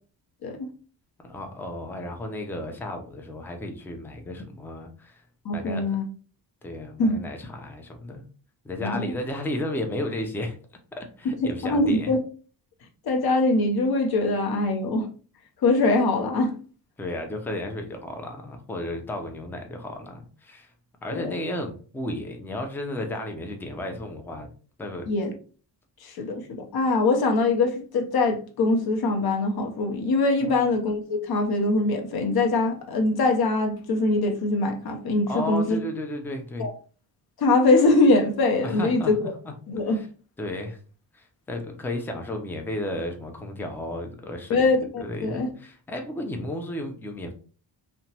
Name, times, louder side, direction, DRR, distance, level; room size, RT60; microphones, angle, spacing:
voice 1, 1.2-5.2 5.5-6.0 6.6-8.2 8.6-10.6 10.9-12.1 17.0-20.7 21.0-24.5 24.8-25.1 30.4-30.7 35.3-36.7 38.6-39.5 39.9-40.1 40.4-40.8 41.1-44.7 45.0-47.3, left 1 dB, 5° left, 0.3 m, -33 dB
voice 2, 5.4-6.0 7.0-7.2 8.8-9.1 11.4-12.2 13.1-15.1 15.6-16.5 21.1-21.4 25.1-25.3 26.0-35.8 36.6-36.7 37.4-39.3 39.7-40.0 44.5-45.5, left 2 dB, 55° left, 0.7 m, -23 dB
2.8 x 2.2 x 2.7 m
wide cardioid pair, 135°, 45 cm